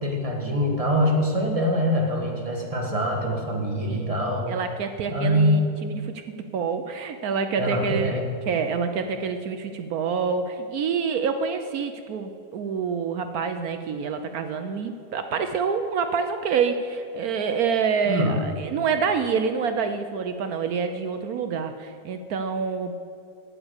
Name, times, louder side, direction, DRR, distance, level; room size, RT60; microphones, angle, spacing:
voice 1, 0.0-4.5 5.1-5.7 7.6-8.3 18.0-18.4, equal, 20° right, -1 dB, 1.7 m, -24 dB
voice 2, 4.5-8.2 8.5-23.0, right 6 dB, 65° right, 8 dB, 1.0 m, -27 dB
9.2 x 9.0 x 8.0 m, 2.5 s
omnidirectional pair, 2.0 m